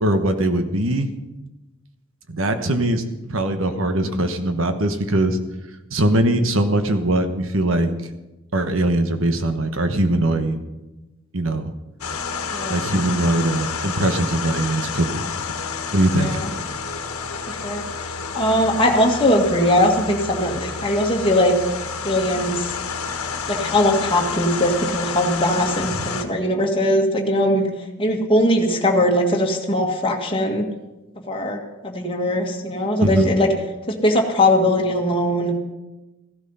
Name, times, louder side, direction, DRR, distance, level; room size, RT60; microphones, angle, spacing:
voice 1, 0.0-1.1 2.3-3.0 3.3-5.4 5.9-7.9 8.5-10.6 11.3-11.7 12.7-15.3 15.9-16.4 25.9-26.1 33.0-33.3, right 1 dB, 65° right, 8 dB, 1.3 m, -21 dB
sound 1, 12.0-26.2, left 5 dB, 90° left, 1.4 m, -29 dB
voice 2, 16.2-16.5 17.5-17.8 18.3-21.5 22.0-22.7 23.5-27.7 28.0-30.7 31.3-33.5 33.9-35.6, left 1 dB, 25° left, 1 dB, 1.8 m, -20 dB
15.0 x 12.0 x 5.6 m, 1.0 s
head